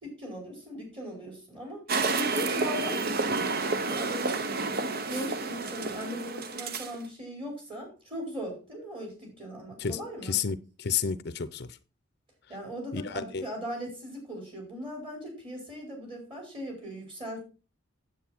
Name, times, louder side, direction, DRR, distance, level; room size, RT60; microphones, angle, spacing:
voice 1, 0.0-4.7 5.1-10.4 12.5-17.4, equal, 25° right, 5.0 m, -39 dB
sound 1, 1.9-7.0, right 3 dB, 50° right, 0.8 m, -30 dB
voice 2, 9.8-11.7 12.9-13.4, left 7 dB, 55° left, 0.6 m, -31 dB
9.4 x 8.1 x 4.3 m
head